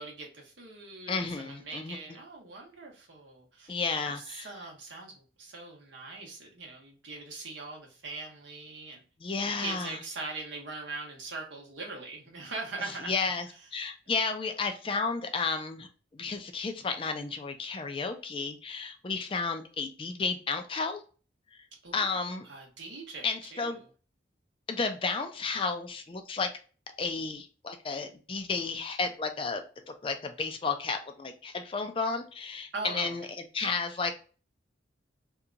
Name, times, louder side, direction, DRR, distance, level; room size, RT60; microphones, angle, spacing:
voice 1, 0.0-3.7 4.0-9.0 9.6-13.1 21.8-22.1 22.4-23.7 32.7-33.1, right 3 dB, 80° right, 0 dB, 1.1 m, -41 dB
voice 2, 1.1-2.0 3.7-4.5 9.2-10.0 12.8-21.0 21.9-22.5 23.2-23.8 24.7-26.5 27.0-33.3 33.5-34.1, left 4 dB, 30° left, 6 dB, 0.4 m, -32 dB
2.8 x 2.3 x 3.7 m, 0.37 s
head